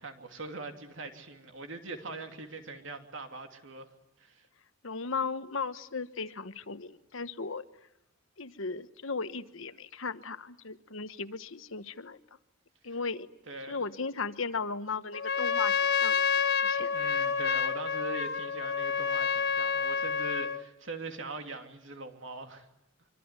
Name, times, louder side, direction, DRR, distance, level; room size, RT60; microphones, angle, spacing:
voice 1, 0.0-3.9 4.2-4.5 12.9-13.0 13.5-13.9 16.9-22.7, right 2 dB, 60° right, 5 dB, 2.9 m, -42 dB
voice 2, 4.8-7.6 8.4-12.2 12.8-13.3 13.7-16.2 16.6-16.9, left 4 dB, 70° left, 12 dB, 1.2 m, -36 dB
Trumpet, 15.1-20.6, left 6 dB, 50° left, 1.3 m, -29 dB
25.5 x 24.5 x 9.6 m, 0.84 s
head